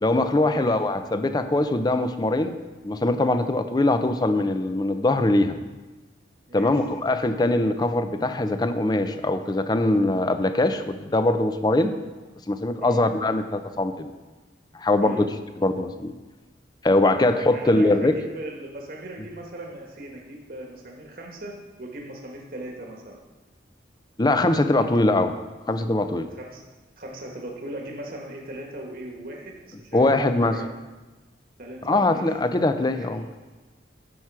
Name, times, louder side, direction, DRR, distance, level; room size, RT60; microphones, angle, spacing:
voice 1, 0.0-2.5 2.8-5.6 6.5-11.9 12.5-14.1 14.8-15.3 15.6-16.1 16.8-18.1 24.2-25.3 25.7-26.3 29.9-30.6 31.8-33.2, left 2 dB, 20° left, 9 dB, 0.5 m, -22 dB
voice 2, 6.5-6.9 12.8-13.1 15.0-15.2 17.5-23.2 24.8-25.1 26.3-26.6 27.0-30.7 31.6-32.3 33.0-33.1, right 1 dB, 50° right, 0 dB, 1.3 m, -39 dB
10.0 x 6.1 x 4.7 m, 1.2 s
head